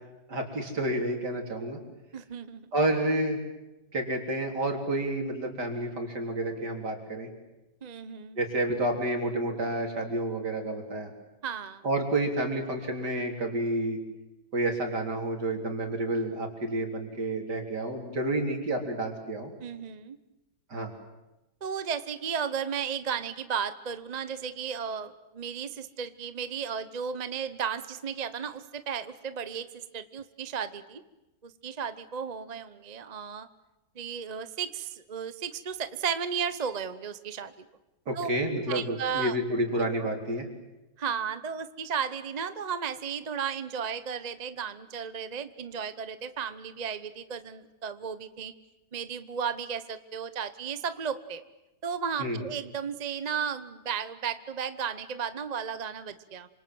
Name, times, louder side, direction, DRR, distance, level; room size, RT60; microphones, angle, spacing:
voice 1, 0.3-1.8 2.7-3.4 3.9-7.3 8.4-11.1 11.8-14.0 14.5-19.5 20.7-20.9 38.1-40.5 52.2-52.4, right 1 dB, 70° right, 2 dB, 4.4 m, -30 dB
voice 2, 2.1-2.7 7.8-8.4 11.4-11.8 19.6-20.2 21.6-29.7 29.9-31.0 31.4-33.5 33.9-37.7 38.1-38.4 38.7-39.4 41.0-48.5 48.9-51.4 51.8-56.5, right 7 dB, 30° right, 12 dB, 0.8 m, -34 dB
27.0 x 26.5 x 7.8 m, 0.99 s
omnidirectional pair, 1.9 m